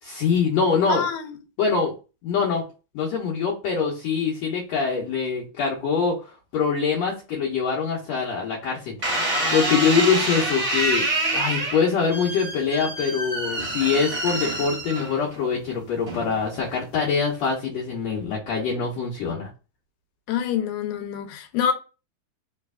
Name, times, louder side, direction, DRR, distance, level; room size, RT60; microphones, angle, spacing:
voice 1, 0.0-1.1 1.6-1.9 2.2-2.6 2.9-6.2 6.5-11.1 11.3-19.5, left 5 dB, 70° left, 2.0 m, -24 dB
voice 2, 0.9-1.3 20.3-21.7, left 8 dB, 90° left, 2.0 m, -26 dB
sound 1, 9.0-15.4 16.1-16.5, right 1 dB, 25° right, 2.0 m, -26 dB
4.1 x 3.3 x 2.2 m
omnidirectional pair, 3.4 m